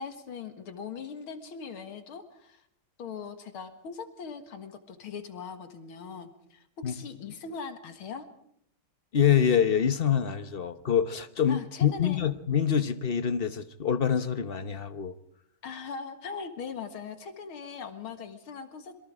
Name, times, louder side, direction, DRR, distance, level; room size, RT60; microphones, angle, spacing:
voice 1, 0.0-2.6 3.0-8.3 11.5-12.2 15.6-19.0, left 5 dB, 80° left, 9 dB, 2.5 m, -40 dB
voice 2, 9.1-15.1, left 8 dB, 50° left, 11 dB, 0.7 m, -26 dB
26.5 x 23.0 x 4.9 m, 0.71 s
omnidirectional pair, 2.3 m